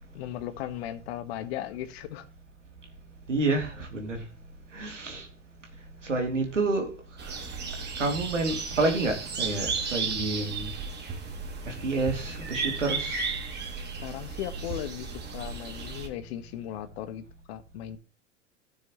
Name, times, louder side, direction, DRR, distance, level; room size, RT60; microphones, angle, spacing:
voice 1, 0.1-2.3 14.0-18.0, left 12 dB, 60° left, 1.4 m, -37 dB
voice 2, 3.3-4.2 4.7-5.3 6.0-6.9 8.0-10.7 11.6-13.3, right 3 dB, 85° right, 2.7 m, -29 dB
sound 1, 7.2-16.1, right 4 dB, 30° right, 2.5 m, -34 dB
15.5 x 6.4 x 3.0 m
figure-of-eight pair, 90°, 36 cm